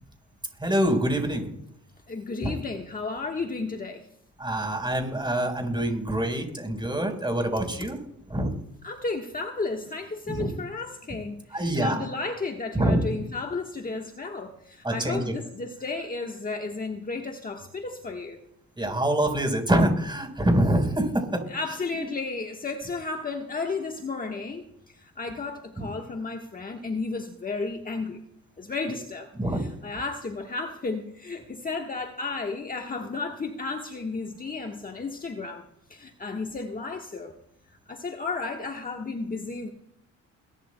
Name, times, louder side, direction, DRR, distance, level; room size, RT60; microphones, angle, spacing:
voice 1, 0.6-1.5 2.4-2.5 4.4-8.0 8.3-8.5 10.3-10.5 11.5-12.0 12.7-13.0 14.8-15.3 18.8-21.4 25.8-25.9 29.4-29.6, right 1 dB, 15° right, 3 dB, 4.3 m, -25 dB
voice 2, 2.1-4.0 8.8-18.4 21.5-24.6 25.0-28.2 28.6-35.6 35.9-37.3 37.9-39.7, left 3 dB, 30° left, 3 dB, 1.3 m, -33 dB
22.0 x 12.5 x 2.2 m, 0.75 s
cardioid pair, 90°, 30 cm